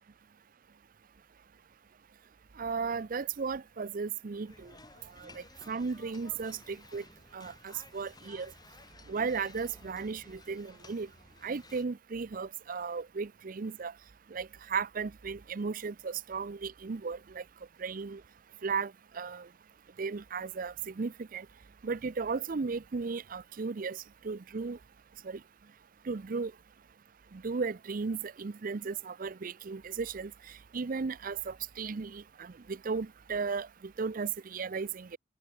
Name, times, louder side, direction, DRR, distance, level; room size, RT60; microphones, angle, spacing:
voice 1, 2.6-4.7 5.2-7.0 7.3-8.5 9.1-11.1 11.4-13.9 14.3-17.4 17.8-18.2 18.6-19.5 20.0-21.5 21.8-24.8 25.2-25.4 26.1-26.5 27.3-30.3 30.7-35.2, right 5 dB, 45° right, 0.5 m, -35 dB
sound 1, 4.5-11.8, left 3 dB, 20° left, 2.0 m, -55 dB
head